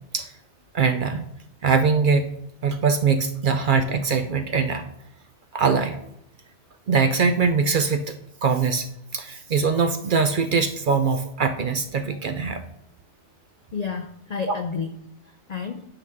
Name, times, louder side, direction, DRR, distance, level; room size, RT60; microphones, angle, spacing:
voice 1, 0.7-1.2 1.6-2.3 2.6-4.8 5.5-6.0 6.9-8.0 8.4-8.9 9.1-12.6 14.5-14.6, right 5 dB, 55° right, 9 dB, 0.6 m, -22 dB
voice 2, 13.7-15.9, left 5 dB, 65° left, 7 dB, 0.4 m, -31 dB
8.9 x 5.7 x 3.6 m, 0.78 s
omnidirectional pair, 1.2 m